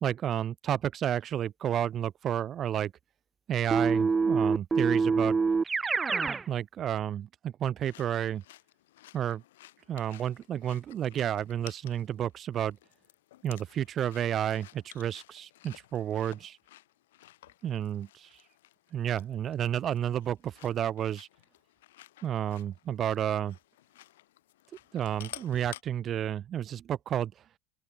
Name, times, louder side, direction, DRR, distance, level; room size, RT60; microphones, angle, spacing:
voice 1, 0.0-2.9 3.5-5.4 6.5-8.4 9.1-9.4 9.9-12.8 13.4-16.6 17.6-18.3 18.9-21.3 22.2-23.6 24.9-27.3, right 10 dB, 35° right, 0.9 m, -31 dB
Keyboard (musical), 3.7-6.4, right 4 dB, 20° right, 0.6 m, -25 dB
sound 1, 7.8-25.8, left 15 dB, 65° left, 5.4 m, -54 dB
open air
figure-of-eight pair, 70°, 0 cm